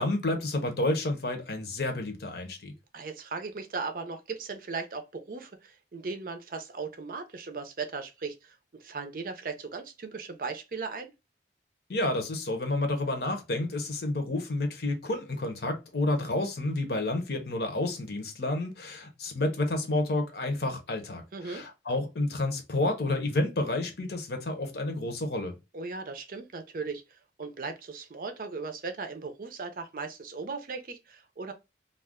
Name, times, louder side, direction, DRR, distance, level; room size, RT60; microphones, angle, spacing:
voice 1, 0.0-2.7 11.9-25.5, left 2 dB, 65° left, 0.7 m, -30 dB
voice 2, 2.9-11.1 21.3-21.6 25.7-31.5, right 4 dB, 50° right, 0.5 m, -37 dB
2.4 x 2.2 x 3.4 m
head